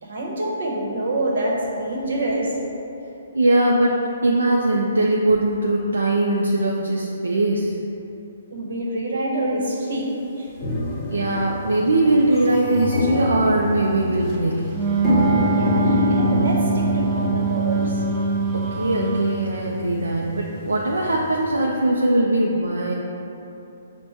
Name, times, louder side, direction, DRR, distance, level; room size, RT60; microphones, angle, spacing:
voice 1, 0.0-2.7 8.5-10.1 10.4-10.5 15.5-18.0, right 1 dB, 70° right, -3 dB, 0.9 m, -26 dB
voice 2, 3.3-7.8 11.1-14.8 18.5-22.9, right 2 dB, 85° right, -2 dB, 0.4 m, -21 dB
sound 1, 9.9-10.0 10.8-11.0 11.4-11.5 11.8-21.5, left 1 dB, 5° left, 0.9 m, -26 dB
sound 2, 10.6-15.3, left 1 dB, 40° left, 0.7 m, -34 dB
Wind instrument woodwind instrument, 14.7-19.5, right 4 dB, 20° right, 0.5 m, -24 dB
5.4 x 2.1 x 4.2 m, 3.0 s
hypercardioid pair, 140°, 0 cm